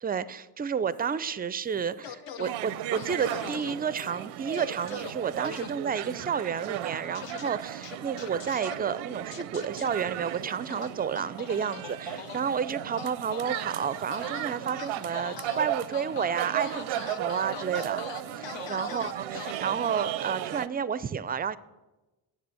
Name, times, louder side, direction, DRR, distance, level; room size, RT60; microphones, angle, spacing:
voice 1, 0.0-18.0 18.3-21.6, right 7 dB, 20° right, 17 dB, 0.3 m, -31 dB
sound 1, 0.9-3.7 4.1-8.7 9.5-10.5 10.9-11.0 12.2-14.4 14.9-20.1, left 2 dB, 50° left, 2.1 m, -54 dB
sound 2, 2.0-2.5 2.9-3.7 4.5-5.1 5.4-5.7 7.1-7.5 7.8-8.7 9.3-9.9 10.7-12.4 13.0-13.7 14.1-14.5 14.8-15.6 15.9-16.3 16.6-19.5, left 9 dB, 65° left, 0.8 m, -41 dB
sound 3, 2.4-20.7, right 13 dB, 90° right, 0.6 m, -36 dB
7.6 x 7.0 x 7.6 m, 1.1 s
cardioid pair, 75°, 47 cm